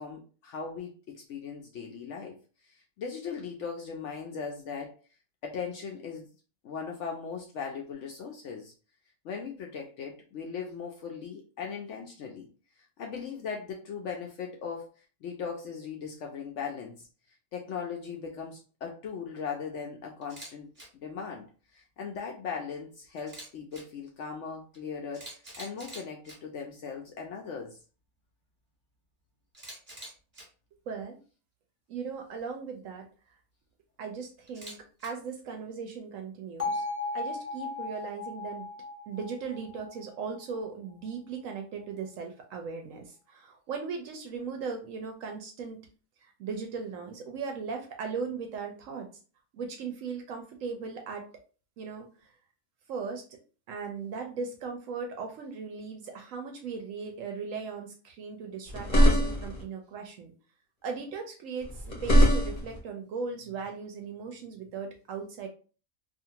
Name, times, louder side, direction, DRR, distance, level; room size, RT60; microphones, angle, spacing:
voice 1, 0.0-2.4 2.6-4.9 5.4-6.3 6.6-8.7 9.2-12.5 13.0-17.0 17.5-20.7 20.9-21.5 21.7-27.8, left 6 dB, 65° left, 1 dB, 0.8 m, -38 dB
Camera, 20.2-20.5 20.7-20.8 23.2-23.8 24.7-24.8 25.1-26.3 29.5-30.4 34.5-35.1, right 1 dB, 25° right, 1.1 m, -45 dB
voice 2, 30.9-31.2 31.9-33.0 34.0-34.7 35.0-36.8 37.1-38.7 39.1-45.9 46.4-49.1 49.5-51.2 51.8-52.1 52.9-53.2 53.7-60.3 60.8-65.5, right 5 dB, 70° right, 3 dB, 0.9 m, -38 dB
Bell, 36.6-40.7, left 3 dB, 20° left, 0.4 m, -36 dB
sound 1, 58.7-59.6 61.6-62.8, equal, 40° left, 0.7 m, -22 dB
2.6 x 2.4 x 2.8 m, 0.37 s
omnidirectional pair, 1.5 m